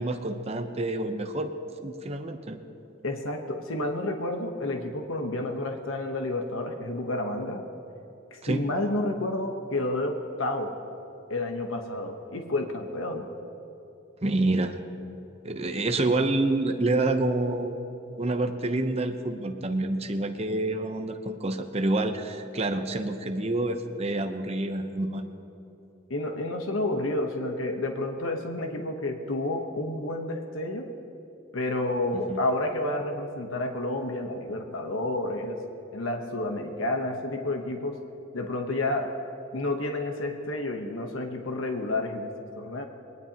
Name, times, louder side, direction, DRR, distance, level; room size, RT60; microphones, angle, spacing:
voice 1, 0.0-1.5 1.8-2.6 8.4-8.6 14.2-14.8 15.4-17.8 18.2-25.2 32.1-32.4, right 2 dB, 30° right, 6 dB, 0.8 m, -28 dB
voice 2, 3.0-7.6 8.3-10.7 11.3-13.3 26.1-30.9 31.5-35.6 35.9-38.0 38.3-39.1 39.5-42.8, left 2 dB, 90° left, 4 dB, 1.1 m, -30 dB
22.0 x 19.0 x 2.9 m, 2.9 s
head